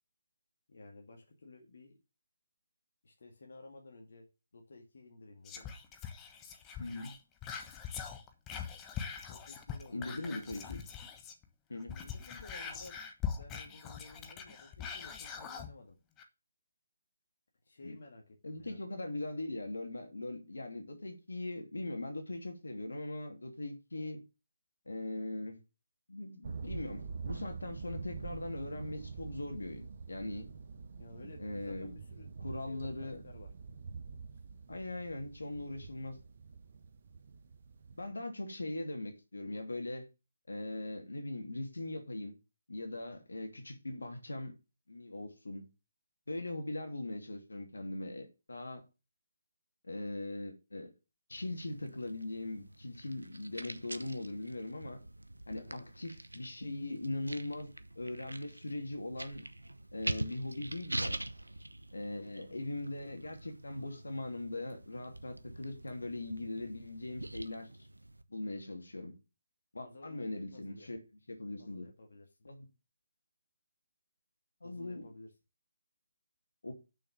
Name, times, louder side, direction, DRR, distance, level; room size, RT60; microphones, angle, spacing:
voice 1, 0.7-2.0 3.0-4.3 4.5-5.7 9.2-10.4 11.9-13.0 13.3-16.0 17.6-18.8 31.0-32.3 32.6-33.5 55.6-55.9 69.8-70.9 71.6-72.4 74.6-75.3, left 2 dB, 60° left, 2.1 m, -54 dB
Whispering, 5.5-11.5 11.8-15.7 16.2-16.3, left 7 dB, 15° left, 1.2 m, -42 dB
voice 2, 6.8-7.2 9.9-10.8 11.7-12.0 17.8-18.0 18.4-24.2 24.9-25.6 26.1-30.5 31.4-31.9 32.4-33.2 34.7-36.2 38.0-40.1 40.5-42.4 42.7-44.5 44.9-45.7 46.3-48.8 49.8-50.9 51.3-55.0 55.5-59.5 59.9-61.2 61.9-67.7 68.3-69.2 69.7-71.0 71.3-71.9 72.4-72.7 74.6-75.1 76.6-76.7, left 2 dB, 75° left, 2.6 m, -40 dB
sound 1, 26.4-38.1, right 5 dB, 50° right, 1.2 m, -46 dB
sound 2, 51.3-68.2, right 1 dB, 85° right, 0.9 m, -45 dB
6.9 x 6.2 x 7.2 m
figure-of-eight pair, 145°, 0 cm